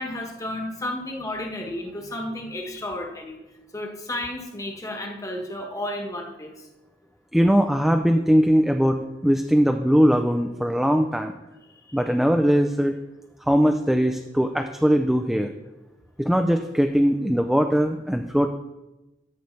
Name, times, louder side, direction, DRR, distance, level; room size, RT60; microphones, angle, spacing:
voice 1, 0.0-3.4 3.7-6.7 11.9-12.0, left 1 dB, 20° left, 2 dB, 1.2 m, -32 dB
voice 2, 7.3-11.3 11.9-13.0 13.5-15.5 16.2-18.5, equal, ahead, 6 dB, 0.3 m, -20 dB
13.0 x 6.9 x 3.2 m, 1.0 s
head